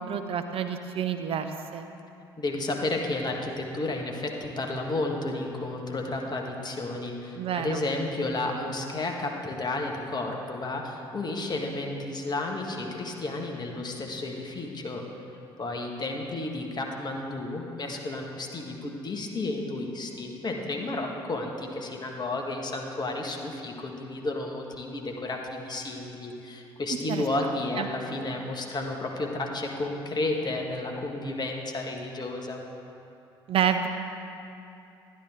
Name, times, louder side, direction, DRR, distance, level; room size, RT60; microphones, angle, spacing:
voice 1, 0.0-1.9 7.4-7.8 27.1-27.2 27.8-27.9 33.5-33.9, right 8 dB, 50° right, 8 dB, 0.6 m, -28 dB
voice 2, 2.4-15.0 15.6-32.6, left 2 dB, 35° left, 1 dB, 1.6 m, -32 dB
11.5 x 11.0 x 3.7 m, 2.8 s
figure-of-eight pair, 50°, 13 cm